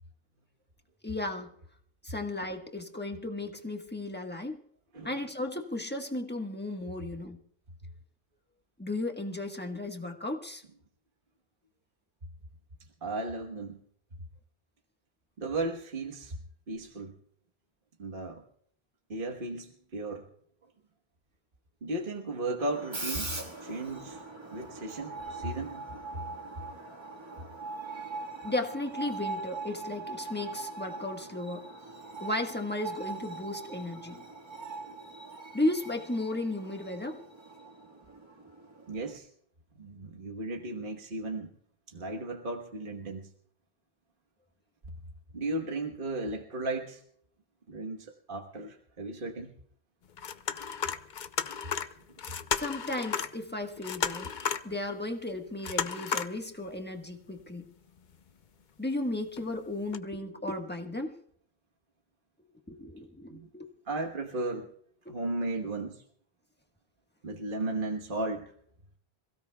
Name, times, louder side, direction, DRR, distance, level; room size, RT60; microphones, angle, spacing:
voice 1, 1.0-1.5 2.0-4.6 5.0-7.4 8.8-10.6 28.4-31.6 32.2-34.2 35.5-37.2 52.6-54.3 54.6-57.7 58.8-61.2 62.7-63.7 65.0-65.1, left 2 dB, 10° left, 3 dB, 1.4 m, -35 dB
voice 2, 13.0-13.8 15.4-16.4 16.7-17.1 18.0-18.4 19.1-20.3 21.8-24.2 24.5-25.9 38.9-39.3 39.8-41.5 41.9-43.3 45.3-47.0 47.7-49.5 63.3-63.5 63.8-64.7 65.1-66.0 67.2-68.4, right 2 dB, 55° right, 2 dB, 1.5 m, -35 dB
Screech, 22.6-39.2, right 3 dB, 25° right, 1.7 m, -41 dB
sound 1, 50.1-53.3 53.6-54.8 55.6-56.4 56.8-56.9 58.0-58.3 59.4-59.5 59.9-60.0, left 7 dB, 50° left, 0.8 m, -33 dB
27.0 x 16.5 x 2.3 m, 0.64 s
omnidirectional pair, 1.1 m